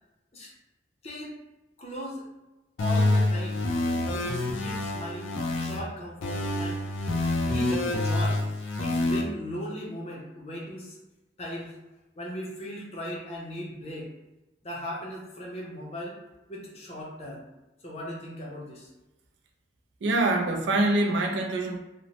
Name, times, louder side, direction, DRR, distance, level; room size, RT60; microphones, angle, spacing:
voice 1, 1.0-1.4 1.8-2.3 2.8-5.3 5.6-6.8 7.5-8.5 8.8-11.0 11.4-11.8 12.2-14.1 14.6-16.2 16.5-17.4 17.8-18.9, equal, 30° left, -3 dB, 0.5 m, -38 dB
sound 1, 2.8-5.8 6.2-9.2, left 2 dB, 85° left, 0.4 m, -27 dB
voice 2, 20.0-21.8, right 2 dB, 70° right, 2 dB, 0.4 m, -24 dB
2.9 x 2.0 x 2.8 m, 1.0 s
head